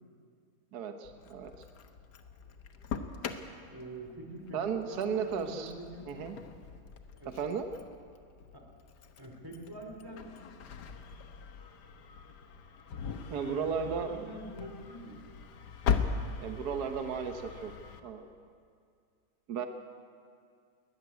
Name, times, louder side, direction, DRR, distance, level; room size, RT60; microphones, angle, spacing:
voice 1, 0.7-1.5 4.5-5.7 6.1-6.4 7.3-7.7 13.3-14.3 16.4-17.7 18.0-18.3 19.5-19.7, right 6 dB, 55° right, 6 dB, 1.4 m, -34 dB
Engine starting, 1.0-18.0, left 6 dB, 60° left, 1.5 m, -40 dB
voice 2, 3.7-6.2 7.1-7.3 9.2-10.4 13.3-15.2, right 1 dB, 10° right, 1 dB, 2.8 m, -45 dB
20.0 x 14.0 x 9.4 m, 2.3 s
omnidirectional pair, 2.2 m